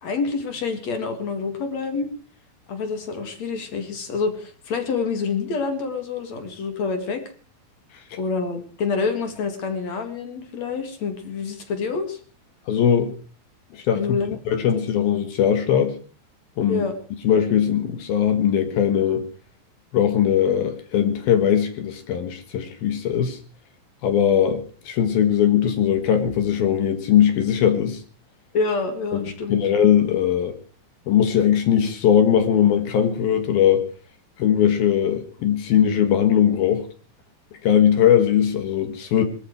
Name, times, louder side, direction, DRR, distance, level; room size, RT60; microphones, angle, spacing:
voice 1, 0.0-2.1 2.7-7.2 8.2-12.2 14.0-14.4 16.7-16.9 28.5-29.7, left 4 dB, 45° left, 7 dB, 2.5 m, -27 dB
voice 2, 12.7-13.1 13.7-14.0 14.5-15.9 16.6-16.8 17.2-19.2 19.9-23.4 24.0-28.0 29.1-29.2 29.5-30.6 31.1-33.9 34.4-36.8 37.6-39.3, left 9 dB, 65° left, 8 dB, 2.9 m, -20 dB
21.0 x 13.5 x 4.6 m, 0.39 s
omnidirectional pair, 5.4 m